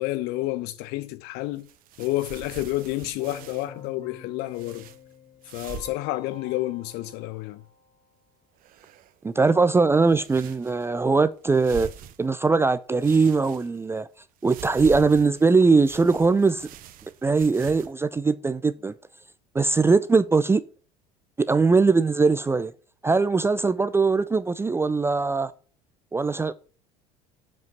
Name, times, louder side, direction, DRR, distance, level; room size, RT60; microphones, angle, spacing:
voice 1, 0.0-1.7 2.0-4.9 5.5-7.6, left 17 dB, 50° left, 1.1 m, -30 dB
sound 1, 1.5-3.7 4.5-5.0 5.4-6.0 6.3-6.4 6.9-7.5 8.6-9.2 10.0-10.9 11.4-12.6 13.0-14.0 14.4-17.9, right 9 dB, 45° right, 0.9 m, -44 dB
Keyboard (musical), 3.2-8.2, left 6 dB, 25° left, 2.3 m, -48 dB
voice 2, 9.2-11.9 12.2-14.1 14.4-16.7 17.2-18.9 19.5-20.6 21.4-22.7 23.0-25.5 26.1-26.5, right 4 dB, 10° right, 0.5 m, -21 dB
7.7 x 5.3 x 7.2 m
figure-of-eight pair, 65°, 21 cm